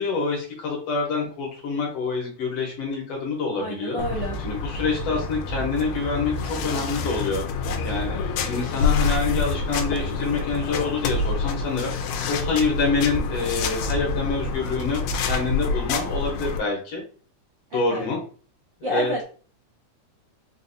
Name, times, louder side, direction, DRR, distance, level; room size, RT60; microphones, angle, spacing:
voice 1, 0.0-8.2 8.4-11.9 12.3-17.0 17.7-18.2 18.8-19.2, left 4 dB, 65° left, -1 dB, 1.8 m, -26 dB
voice 2, 3.5-4.4 17.7-18.1 18.8-19.2, equal, 80° right, -4 dB, 1.0 m, -29 dB
sound 1, 4.0-16.6, left 4 dB, 80° left, 1.8 m, -27 dB
4.7 x 2.6 x 2.6 m, 0.41 s
omnidirectional pair, 3.4 m